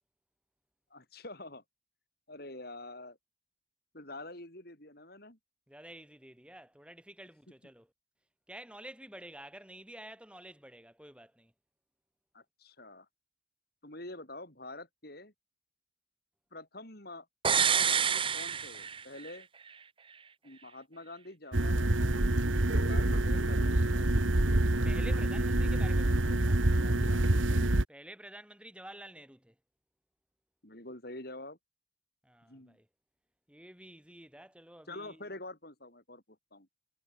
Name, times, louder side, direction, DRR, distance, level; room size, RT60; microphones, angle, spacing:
voice 1, 0.9-1.6 2.3-3.2 3.9-5.4 12.3-13.1 13.8-15.3 16.5-17.3 17.5-19.5 20.4-22.4 22.7-24.1 26.8-27.7 30.6-31.6 32.5-32.8 34.9-36.2 36.5-36.7, left 2 dB, 50° left, 5.3 m, -47 dB
voice 2, 5.7-7.9 8.5-11.5 24.8-26.6 27.9-29.6 32.2-32.9 33.5-35.3, right 1 dB, 5° right, 5.6 m, -50 dB
sound 1, 17.4-19.4 19.7-19.8, right 7 dB, 25° right, 1.1 m, -28 dB
sound 2, 21.5-27.8, right 1 dB, 85° right, 1.8 m, -27 dB
head